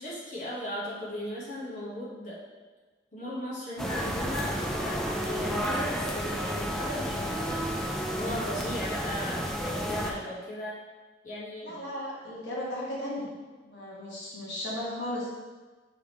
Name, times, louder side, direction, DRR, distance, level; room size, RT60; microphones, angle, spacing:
voice 1, 0.0-2.4 3.1-10.8 11.2-11.9, left 1 dB, 45° left, -7 dB, 1.3 m, -37 dB
sound 1, 3.8-10.1, equal, ahead, 0.3 m, -31 dB
voice 2, 11.6-13.3 13.6-15.3, left 1 dB, 70° left, -6 dB, 1.4 m, -35 dB
4.8 x 3.5 x 3.1 m, 1.3 s
head